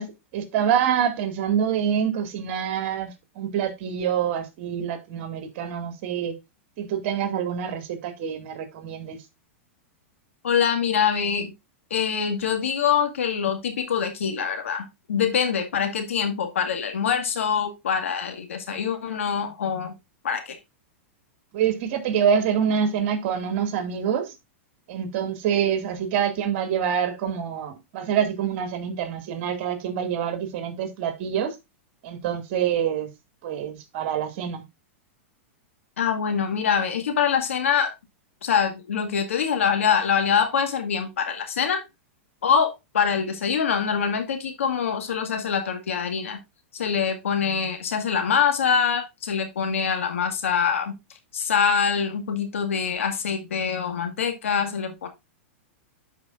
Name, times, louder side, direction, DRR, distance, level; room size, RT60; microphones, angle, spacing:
voice 1, 0.0-6.4 6.8-9.2 21.5-24.3 24.9-31.6 32.0-33.1 33.4-34.6, right 8 dB, 55° right, 2.0 m, -26 dB
voice 2, 10.4-11.5 11.9-20.0 20.2-20.6 36.0-37.9 38.4-41.8 42.4-46.4 46.7-51.0 51.3-55.1, left 7 dB, 85° left, 2.0 m, -24 dB
11.5 x 4.9 x 2.5 m
hypercardioid pair, 120°, 7 cm